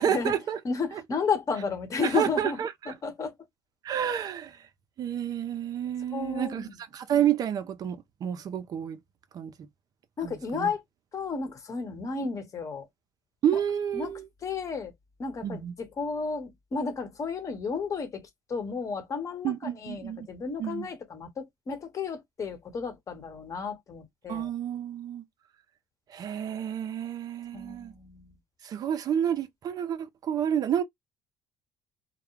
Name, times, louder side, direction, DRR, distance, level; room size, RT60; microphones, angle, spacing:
voice 1, 0.0-0.6 0.9-1.0 2.1-2.9 3.8-4.6 5.0-6.7 6.9-9.0 9.3-9.5 10.2-10.7 13.4-14.2 15.4-15.7 19.4-20.3 20.6-20.9 24.3-25.2 26.1-27.9 28.6-30.8, right 9 dB, 50° right, 0.5 m, -29 dB
voice 2, 0.6-2.6 2.9-3.3 6.1-6.7 10.2-10.8 11.1-12.9 13.9-14.1 14.4-14.9 15.2-24.5 27.5-28.3, left 5 dB, 40° left, 1.0 m, -33 dB
2.3 x 2.1 x 3.0 m
hypercardioid pair, 70°, 8 cm